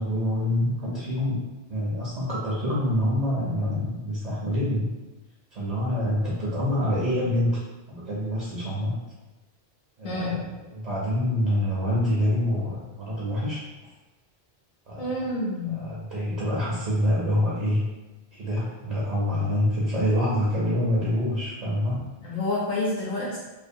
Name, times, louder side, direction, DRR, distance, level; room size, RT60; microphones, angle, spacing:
voice 1, 0.0-1.4 1.7-4.9 5.5-7.6 7.9-9.0 10.0-13.6 14.9-15.1 15.6-17.8 18.3-22.0, left 1 dB, 50° right, -6 dB, 0.6 m, -26 dB
voice 2, 10.0-10.3 15.0-15.9 22.2-23.4, left 2 dB, 65° left, -6 dB, 0.7 m, -28 dB
2.4 x 2.3 x 2.6 m, 1.1 s
omnidirectional pair, 1.1 m